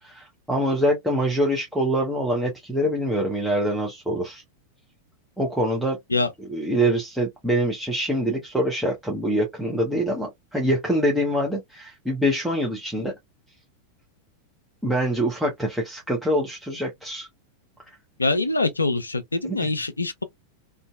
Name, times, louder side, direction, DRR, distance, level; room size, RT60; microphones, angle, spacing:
voice 1, 0.0-4.4 5.4-6.0 6.5-13.1 14.8-17.3 19.6-19.7, equal, ahead, 0.7 m, -24 dB
voice 2, 18.2-20.2, left 2 dB, 80° left, 0.3 m, -24 dB
2.6 x 2.3 x 2.3 m
figure-of-eight pair, 90°, 0 cm